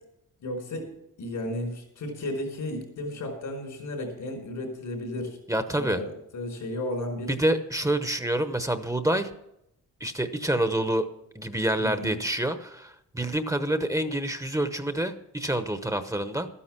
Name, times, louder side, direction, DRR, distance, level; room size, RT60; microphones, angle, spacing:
voice 1, 0.4-0.9 1.2-5.4 5.8-7.3 11.8-12.2, left 1 dB, 80° left, 2 dB, 4.7 m, -34 dB
voice 2, 5.5-6.0 7.3-9.3 10.0-11.1 11.3-16.5, right 1 dB, 10° right, 9 dB, 1.0 m, -27 dB
13.0 x 10.0 x 6.0 m, 0.79 s
cardioid pair, 80°, 30 cm